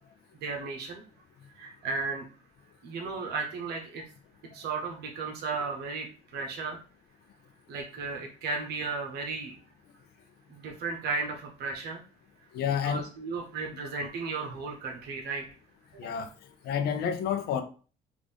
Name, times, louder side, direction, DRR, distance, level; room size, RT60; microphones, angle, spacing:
voice 1, 0.4-1.0 1.6-2.2 2.8-4.0 4.5-6.1 6.3-6.8 7.7-9.6 10.5-12.0 12.8-15.4, right 4 dB, 70° right, 0.9 m, -34 dB
voice 2, 12.5-13.0 16.0-16.3 16.6-17.6, left 8 dB, 70° left, 0.6 m, -29 dB
3.7 x 2.6 x 3.4 m
cardioid pair, 110°, 17 cm